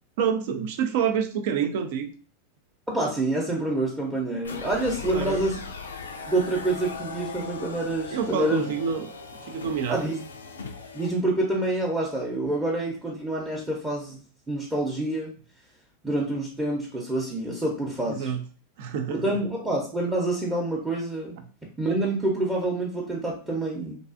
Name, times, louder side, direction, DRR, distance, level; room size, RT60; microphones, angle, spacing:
voice 1, 0.2-2.1 5.0-5.4 8.1-9.1 9.4-10.0 18.1-18.5 18.8-19.4, right 7 dB, 65° right, 0.4 m, -27 dB
voice 2, 2.9-5.6 6.3-8.7 9.9-10.1 10.9-14.2 14.5-15.3 16.0-18.3 19.1-21.4 21.8-24.0, right 2 dB, 10° right, 0.6 m, -27 dB
sound 1, 4.4-11.2, left 4 dB, 85° left, 0.3 m, -38 dB
2.5 x 2.3 x 2.4 m
hypercardioid pair, 95°, 0 cm